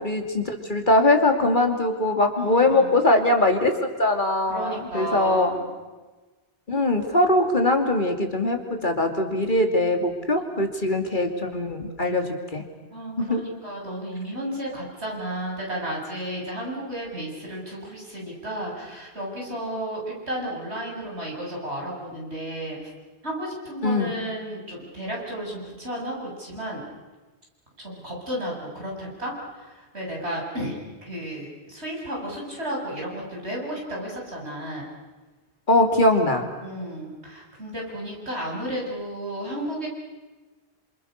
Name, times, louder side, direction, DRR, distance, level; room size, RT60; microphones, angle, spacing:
voice 1, 0.0-5.5 6.7-12.6 13.2-13.4 23.8-24.1 35.7-36.5, left 2 dB, 50° left, 4 dB, 2.9 m, -22 dB
voice 2, 2.4-3.0 4.5-5.7 12.9-22.9 23.2-26.8 27.8-34.9 36.6-39.9, right 1 dB, 85° right, -2 dB, 8.0 m, -33 dB
29.5 x 27.0 x 6.7 m, 1.2 s
omnidirectional pair, 1.1 m